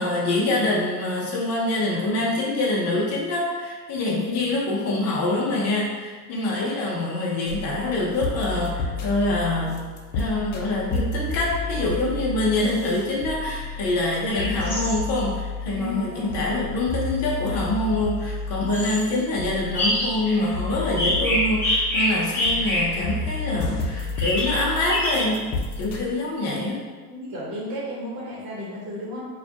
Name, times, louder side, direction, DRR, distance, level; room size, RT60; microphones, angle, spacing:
voice 1, 0.0-9.9 10.1-25.5 25.8-26.8, left 2 dB, 35° left, -4 dB, 0.8 m, -25 dB
sound 1, 7.5-26.0, left 3 dB, 65° left, 0.8 m, -31 dB
sound 2, 14.3-15.0 18.7-19.0 19.7-20.5 21.0-23.2 24.2-25.3, left 1 dB, 5° left, 0.7 m, -25 dB
voice 2, 15.6-16.3 27.1-29.2, left 1 dB, 40° right, -6 dB, 1.1 m, -33 dB
4.7 x 2.5 x 2.8 m, 1.4 s
cardioid pair, 170°, 46 cm